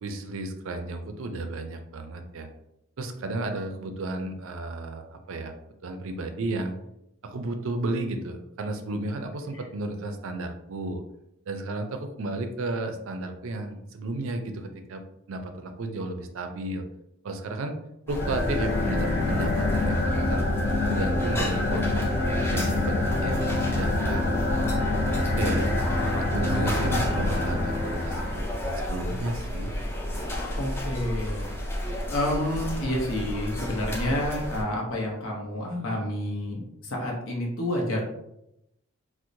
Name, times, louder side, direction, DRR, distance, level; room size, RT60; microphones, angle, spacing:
voice 1, 0.0-2.5 3.0-5.5 5.8-6.7 7.2-11.0 11.5-15.0 15.3-16.8 17.2-17.8 18.1-20.5 20.9-22.0 22.5-24.6 24.9-25.6 26.2-29.7, right 2 dB, 65° right, 6 dB, 0.4 m, -33 dB
sound 1, 18.1-28.6, left 2 dB, 40° left, 0.8 m, -26 dB
sound 2, 18.1-34.6, left 1 dB, 10° left, 0.3 m, -32 dB
voice 2, 26.5-26.9 30.6-31.5 32.1-38.0, left 1 dB, 70° left, -1 dB, 0.8 m, -29 dB
4.4 x 2.1 x 2.6 m, 0.83 s
head